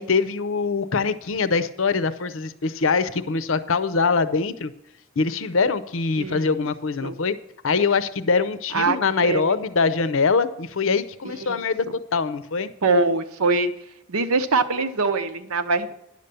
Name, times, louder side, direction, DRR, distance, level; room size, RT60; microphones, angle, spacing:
voice 1, 0.0-4.7 5.2-7.3 7.6-11.8 12.1-12.7, left 4 dB, 65° left, 13 dB, 0.6 m, -23 dB
voice 2, 9.2-9.6 11.5-11.6 12.8-13.7 14.1-15.9, right 3 dB, 85° right, 8 dB, 0.9 m, -22 dB
10.5 x 6.7 x 6.8 m, 0.84 s
head